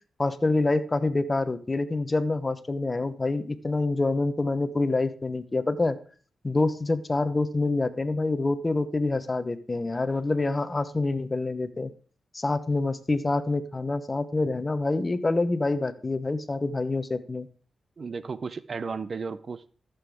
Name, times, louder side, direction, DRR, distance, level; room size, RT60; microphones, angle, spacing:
voice 1, 0.2-6.0 6.4-11.9 12.3-17.5, left 2 dB, 30° left, 13 dB, 0.9 m, -26 dB
voice 2, 18.0-19.7, right 5 dB, 50° right, 17 dB, 0.5 m, -34 dB
14.0 x 7.0 x 3.6 m, 0.41 s
cardioid pair, 75°, 0 cm